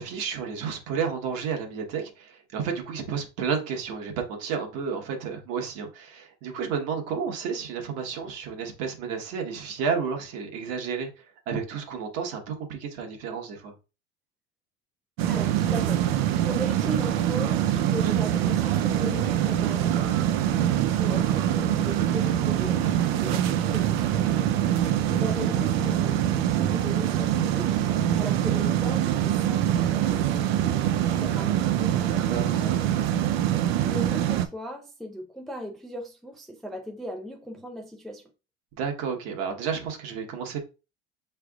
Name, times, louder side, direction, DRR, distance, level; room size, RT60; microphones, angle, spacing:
voice 1, 0.0-13.7 22.8-23.3 32.3-32.8 38.8-40.6, right 6 dB, 55° right, 1.2 m, -31 dB
sound 1, 15.2-34.5, right 11 dB, 80° right, 0.6 m, -24 dB
voice 2, 15.3-22.8 23.1-23.9 25.1-27.9 28.2-32.3 33.9-38.3, equal, ahead, 0.3 m, -38 dB
5.8 x 3.3 x 2.3 m
cardioid pair, 145°, 30 cm